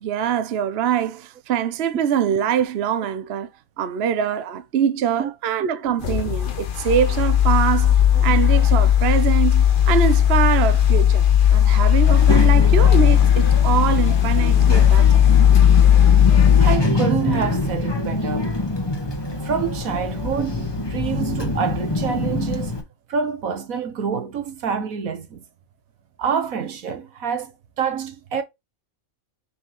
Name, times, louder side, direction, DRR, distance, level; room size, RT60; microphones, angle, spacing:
voice 1, 0.0-3.5 3.8-7.9 8.2-15.1, right 8 dB, 55° right, 0.9 m, -23 dB
sound 1, 6.0-16.8, left 10 dB, 45° left, 0.9 m, -16 dB
Child speech kid speaking, 12.0-22.8, left 2 dB, 20° left, 1.3 m, -25 dB
voice 2, 16.6-18.5 19.4-22.8 23.1-25.4 26.2-28.4, right 7 dB, 80° right, 1.6 m, -27 dB
6.6 x 5.6 x 3.0 m
omnidirectional pair, 1.4 m